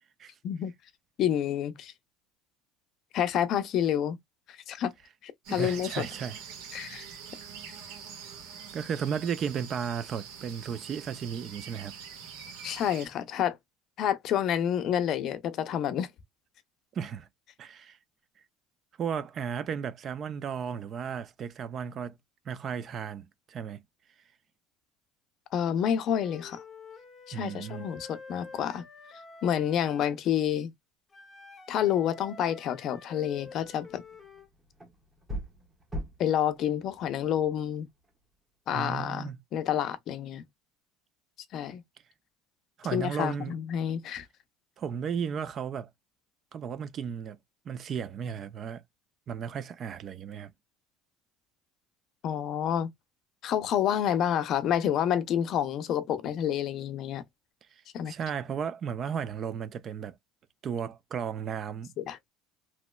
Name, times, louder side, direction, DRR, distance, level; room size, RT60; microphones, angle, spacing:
voice 1, 1.2-1.9 3.1-4.2 4.5-4.9 5.2-6.1 6.7-7.0 12.6-13.6 14.0-16.1 25.5-26.6 27.3-28.8 29.4-30.7 31.7-34.0 36.2-37.9 38.7-40.4 41.5-41.8 42.9-44.3 52.2-52.9 53.4-57.2 57.9-58.1 62.0-62.2, left 10 dB, 45° left, 0.5 m, -29 dB
sound 1, 5.4-13.1, right 7 dB, 80° right, 1.4 m, -44 dB
voice 2, 5.5-6.4 6.8-7.1 8.7-11.9 16.9-17.3 17.6-18.0 19.0-22.2 22.5-23.8 27.3-27.9 38.7-39.4 42.8-43.6 44.8-45.9 46.5-47.4 47.7-48.8 49.3-50.5 57.7-60.2 60.6-61.9, right 7 dB, 35° right, 0.4 m, -34 dB
Wind instrument woodwind instrument, 26.1-30.2 31.1-34.5, left 4 dB, 15° left, 0.8 m, -49 dB
sound 2, 33.4-38.2, equal, 10° right, 1.2 m, -43 dB
3.0 x 3.0 x 2.2 m
cardioid pair, 150°, 0 cm